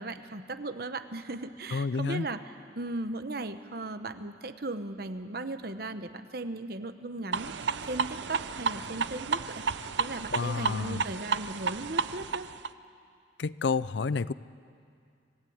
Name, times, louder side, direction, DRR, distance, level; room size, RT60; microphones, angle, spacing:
voice 1, 0.0-2.4 2.8-7.5 7.9-9.6 10.0-12.5, right 2 dB, 55° right, 10 dB, 1.0 m, -37 dB
voice 2, 1.7-2.3 10.3-11.0 13.4-14.3, left 4 dB, 70° left, 17 dB, 0.5 m, -30 dB
sound 1, 7.3-12.7, right 5 dB, 75° right, 0.6 m, -32 dB
26.5 x 17.5 x 8.7 m, 2.3 s
head